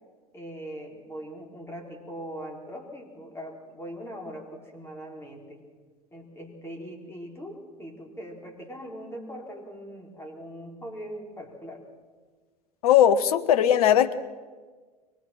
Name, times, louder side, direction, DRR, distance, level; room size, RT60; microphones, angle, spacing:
voice 1, 0.3-5.6 6.1-11.8, equal, 10° left, 0 dB, 4.3 m, -41 dB
voice 2, 12.8-14.1, left 10 dB, 65° left, 11 dB, 1.0 m, -19 dB
23.5 x 20.0 x 6.2 m, 1.4 s
figure-of-eight pair, 70°, 20 cm